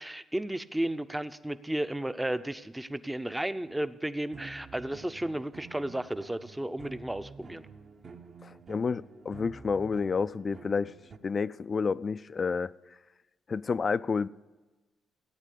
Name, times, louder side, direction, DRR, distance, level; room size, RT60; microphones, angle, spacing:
voice 1, 0.0-7.6, right 1 dB, 10° right, 0.6 m, -33 dB
sound 1, 4.3-11.2, right 4 dB, 50° right, 1.0 m, -49 dB
voice 2, 8.4-10.9 11.2-12.7 13.5-14.3, left 5 dB, 40° left, 0.4 m, -30 dB
16.0 x 8.9 x 8.4 m
cardioid pair, 90°, 0 cm